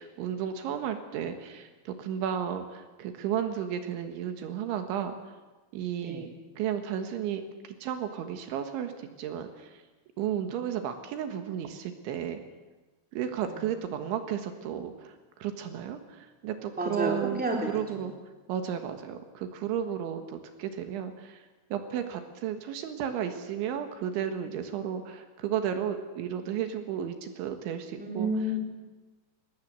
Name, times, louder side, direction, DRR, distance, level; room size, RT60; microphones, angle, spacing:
voice 1, 0.0-5.2 5.7-6.3 6.6-9.8 10.2-12.4 13.1-18.1 18.5-28.3, right 9 dB, 80° right, 7 dB, 3.8 m, -33 dB
voice 2, 16.8-17.7 28.0-28.6, right 1 dB, ahead, 0 dB, 2.8 m, -30 dB
22.5 x 19.0 x 7.9 m, 1.2 s
omnidirectional pair, 5.5 m